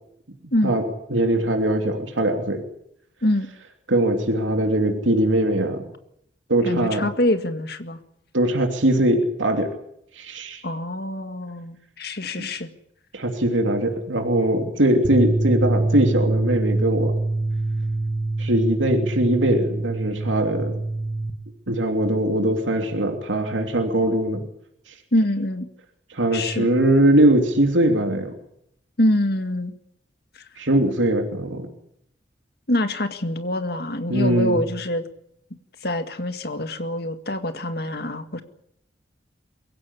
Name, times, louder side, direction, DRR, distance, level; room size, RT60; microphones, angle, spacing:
voice 1, 1.1-2.6 3.9-5.8 6.5-7.0 8.3-9.7 10.1-10.6 12.4-12.5 13.1-17.1 18.4-20.8 21.7-24.4 24.9-25.0 26.1-28.3 30.6-31.7 34.1-34.6, right 1 dB, 90° right, 4 dB, 3.0 m, -21 dB
voice 2, 6.6-8.0 10.6-12.7 25.1-25.7 26.3-26.7 29.0-29.7 30.3-30.5 32.7-35.1 35.8-38.4, left 1 dB, 55° left, 8 dB, 2.0 m, -25 dB
sound 1, 15.0-21.3, right 2 dB, 25° right, 2.1 m, -25 dB
23.0 x 16.0 x 9.9 m, 0.75 s
head